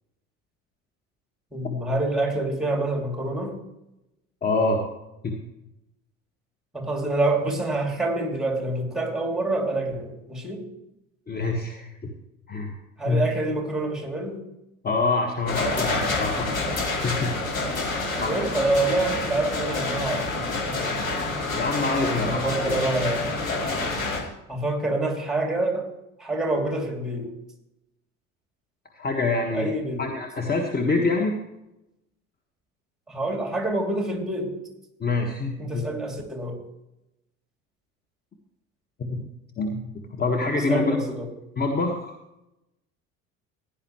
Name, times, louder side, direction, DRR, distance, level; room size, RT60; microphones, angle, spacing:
voice 1, 1.5-3.6 6.7-10.7 13.0-14.4 18.2-20.8 22.0-23.3 24.5-25.9 26.2-27.3 29.5-30.1 33.1-34.6 35.6-36.6 40.6-41.3, right 2 dB, ahead, 1 dB, 2.9 m, -27 dB
voice 2, 4.4-4.8 5.2-5.3 11.3-12.1 12.5-12.7 13.0-13.3 14.8-16.7 17.0-17.3 17.9-18.4 21.5-22.7 28.9-29.7 30.0-31.4 35.0-35.8 39.0-39.2 39.6-39.8 40.2-41.0 41.6-42.1, left 3 dB, 25° left, 3 dB, 1.6 m, -26 dB
sound 1, 15.5-24.2, left 3 dB, 90° left, 2.1 m, -28 dB
16.5 x 10.5 x 3.2 m, 0.89 s
figure-of-eight pair, 60°, 39 cm